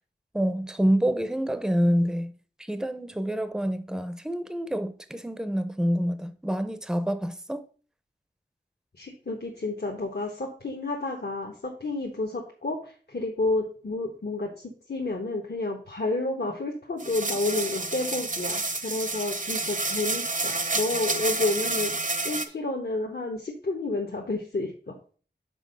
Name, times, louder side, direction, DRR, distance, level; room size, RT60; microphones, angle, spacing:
voice 1, 0.3-2.3 2.6-7.7, equal, 5° right, 0.6 m, -27 dB
voice 2, 9.0-21.9 22.2-25.0, left 2 dB, 60° left, 1.1 m, -30 dB
sound 1, 17.0-22.5, right 3 dB, 45° right, 0.8 m, -29 dB
6.2 x 4.5 x 5.3 m
wide cardioid pair, 50°, 19 cm